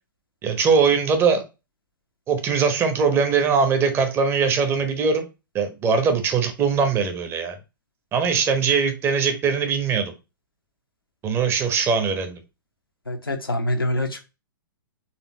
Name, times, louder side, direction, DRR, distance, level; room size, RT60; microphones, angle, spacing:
voice 1, 0.4-1.4 2.3-5.2 5.5-7.6 8.1-10.1 11.2-12.4, right 5 dB, 20° right, 0.9 m, -21 dB
voice 2, 13.1-14.2, left 1 dB, 85° left, 1.0 m, -25 dB
4.4 x 3.4 x 2.9 m
figure-of-eight pair, 110°, 12 cm